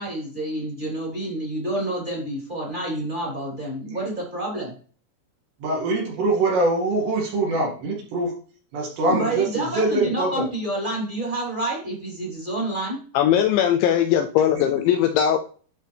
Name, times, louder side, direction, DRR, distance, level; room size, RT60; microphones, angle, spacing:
voice 1, 0.0-4.7 9.1-13.0, right 1 dB, 15° right, -4 dB, 2.1 m, -28 dB
voice 2, 5.6-8.4 8.7-10.4 14.6-14.8, right 2 dB, 65° right, -1 dB, 4.1 m, -24 dB
voice 3, 13.1-15.4, left 10 dB, 85° left, 6 dB, 2.6 m, -19 dB
11.5 x 4.9 x 3.4 m, 0.42 s
omnidirectional pair, 5.7 m